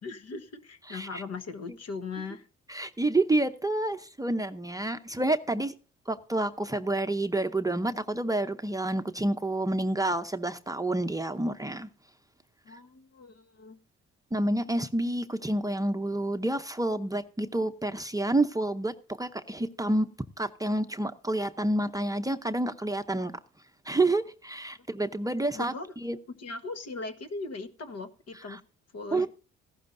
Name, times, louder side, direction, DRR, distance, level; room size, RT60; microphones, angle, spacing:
voice 1, 0.0-2.5 12.6-13.8 25.5-25.9 26.3-28.6 28.9-29.3, left 3 dB, 55° left, 1.4 m, -39 dB
voice 2, 0.9-1.2 2.7-5.7 6.1-11.9 14.3-20.1 20.4-23.3 23.9-25.7 26.0-26.2 28.5-28.6 29.1-29.3, right 2 dB, 10° right, 0.7 m, -29 dB
15.0 x 12.0 x 2.6 m
cardioid pair, 90°, 30 cm